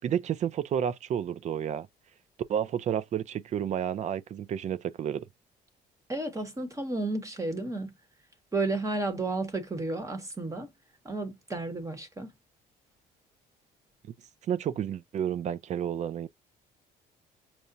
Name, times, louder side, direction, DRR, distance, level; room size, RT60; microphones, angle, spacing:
voice 1, 0.0-1.9 2.5-5.2 14.5-16.3, right 9 dB, 45° right, 0.4 m, -31 dB
voice 2, 6.1-7.9 8.5-10.7 11.0-12.3, right 2 dB, 20° right, 1.0 m, -32 dB
5.6 x 2.1 x 2.5 m
cardioid pair, 110°, 17 cm